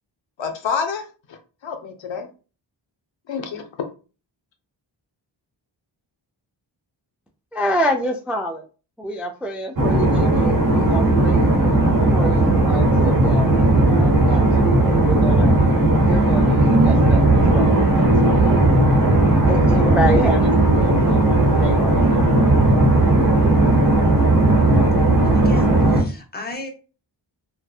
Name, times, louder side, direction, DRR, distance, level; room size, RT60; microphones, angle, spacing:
voice 1, 0.4-2.3 3.3-3.6, left 6 dB, 70° left, 5 dB, 0.6 m, -28 dB
voice 2, 7.5-8.6 9.0-11.7 12.1-15.5 16.0-18.7 19.3-22.3, equal, 5° right, 3 dB, 0.3 m, -28 dB
sound 1, 9.8-26.0, right 2 dB, 45° right, 0.9 m, -16 dB
voice 3, 25.1-26.7, left 2 dB, 20° left, 3 dB, 0.7 m, -35 dB
2.6 x 2.2 x 2.3 m, 0.35 s
cardioid pair, 50°, 46 cm